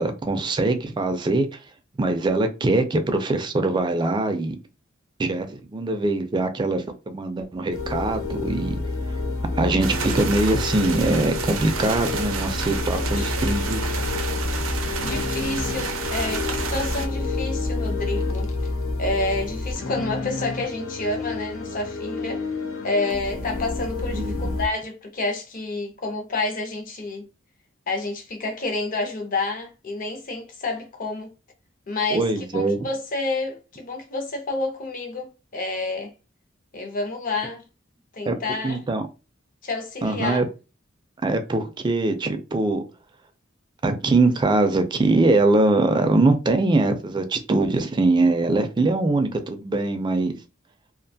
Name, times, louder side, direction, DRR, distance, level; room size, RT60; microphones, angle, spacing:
voice 1, 0.0-1.6 2.0-4.6 5.2-8.8 9.5-13.8 24.1-24.5 32.1-32.8 38.3-38.4 38.6-39.1 40.0-40.4 41.2-42.8 43.8-50.3, right 2 dB, 20° right, 0.3 m, -22 dB
sound 1, 7.7-24.7, left 3 dB, 90° left, 0.6 m, -29 dB
sound 2, 9.8-17.1, right 5 dB, 90° right, 0.5 m, -30 dB
voice 2, 12.9-13.3 15.0-18.5 19.0-22.5 22.8-27.3 27.9-31.3 31.9-36.1 36.7-37.6 38.1-38.8 39.6-40.4, left 2 dB, 45° left, 0.6 m, -29 dB
2.4 x 2.2 x 2.6 m
head